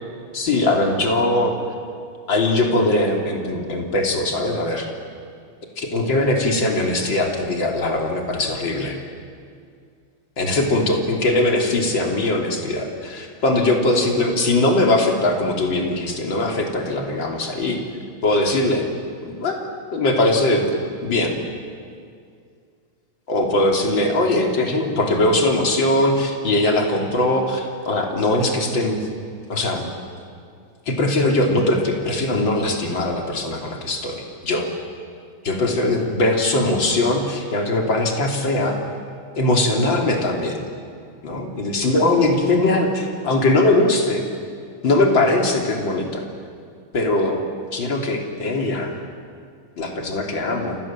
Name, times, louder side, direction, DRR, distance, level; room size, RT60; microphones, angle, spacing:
voice 1, 0.3-1.6 2.3-4.9 5.8-9.0 10.4-17.8 18.2-18.8 19.2-20.6 21.0-21.4 23.3-29.1 29.5-29.9 30.9-34.7 35.4-38.8 39.4-40.6 41.2-44.2 44.8-46.3 46.9-47.4 47.7-49.0 49.8-50.8, left 2 dB, 60° left, 1 dB, 3.8 m, -20 dB
29.5 x 26.5 x 7.5 m, 2.3 s
omnidirectional pair, 2.4 m